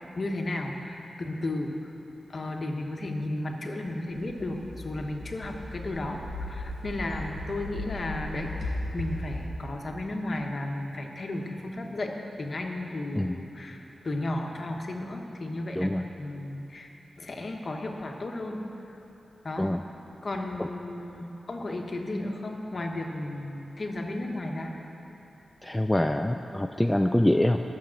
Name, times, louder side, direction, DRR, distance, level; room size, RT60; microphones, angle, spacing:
voice 1, 0.2-1.7 2.3-13.8 14.0-15.9 16.2-16.9 17.2-18.6 19.4-19.7 20.2-24.7, left 1 dB, 45° left, 2 dB, 1.2 m, -34 dB
sound 1, 4.1-9.4, left 1 dB, 75° right, 2.3 m, -37 dB
voice 2, 15.8-16.1 19.6-19.8 25.6-27.6, left 1 dB, 10° left, 5 dB, 0.3 m, -25 dB
11.5 x 6.8 x 7.5 m, 3.0 s
wide cardioid pair, 105°, 0 cm